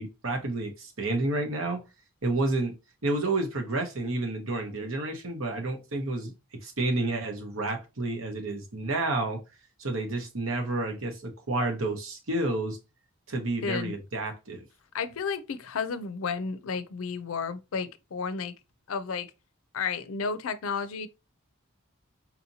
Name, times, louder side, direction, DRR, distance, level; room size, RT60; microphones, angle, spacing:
voice 1, 0.0-1.8 2.2-2.7 3.0-6.3 6.6-9.4 9.8-12.8 13.3-14.6, right 2 dB, 70° right, 1.1 m, -30 dB
voice 2, 13.6-13.9 14.9-18.5 18.9-19.3 19.7-21.1, left 5 dB, 75° left, 0.5 m, -32 dB
4.2 x 2.8 x 2.7 m
head